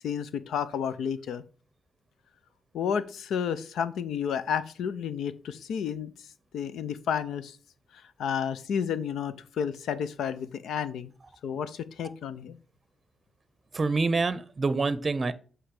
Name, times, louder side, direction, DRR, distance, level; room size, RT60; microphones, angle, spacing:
voice 1, 0.0-1.4 2.7-6.1 6.5-7.6 8.2-11.1 11.4-12.6, left 7 dB, 85° left, 14 dB, 0.5 m, -31 dB
voice 2, 13.7-15.3, right 3 dB, 40° right, 14 dB, 0.6 m, -26 dB
7.9 x 3.2 x 4.8 m, 0.39 s
supercardioid pair, 55°, 0 cm